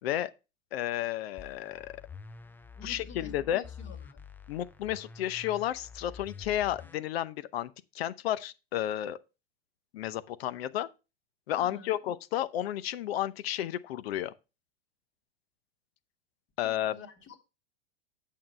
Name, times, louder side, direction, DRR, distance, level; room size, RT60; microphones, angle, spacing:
voice 1, 0.7-1.9 2.8-3.6 4.5-9.2 9.9-10.9 11.5-14.3 16.6-16.9, left 12 dB, 70° left, 0.8 m, -32 dB
sound 1, 1.4-7.0, left 5 dB, 5° left, 0.4 m, -47 dB
voice 2, 2.8-4.2 11.6-12.0 16.6-17.4, left 4 dB, 40° left, 2.2 m, -49 dB
8.6 x 7.4 x 3.2 m
hypercardioid pair, 100°, 31 cm